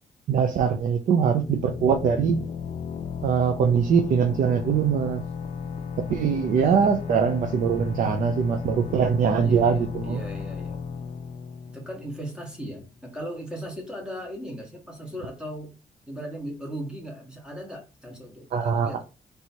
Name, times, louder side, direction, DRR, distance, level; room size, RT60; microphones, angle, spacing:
voice 1, 0.3-2.4 3.2-5.2 6.1-10.2 18.5-18.9, right 6 dB, 85° right, 0.6 m, -22 dB
sound 1, 1.2-12.7, left 6 dB, 60° left, 0.4 m, -35 dB
voice 2, 6.6-6.9 9.4-10.8 11.7-15.7 16.1-19.0, equal, 5° right, 1.2 m, -37 dB
3.4 x 3.0 x 4.2 m
wide cardioid pair, 175°, 13 cm